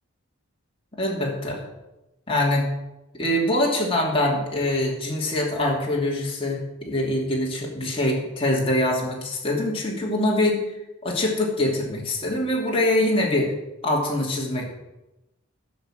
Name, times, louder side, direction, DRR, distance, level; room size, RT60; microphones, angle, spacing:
voice 1, 1.0-1.6 2.3-2.6 3.1-10.7 11.0-13.5 13.8-14.6, left 1 dB, 25° left, -3 dB, 2.8 m, -24 dB
16.0 x 5.9 x 7.6 m, 0.95 s
head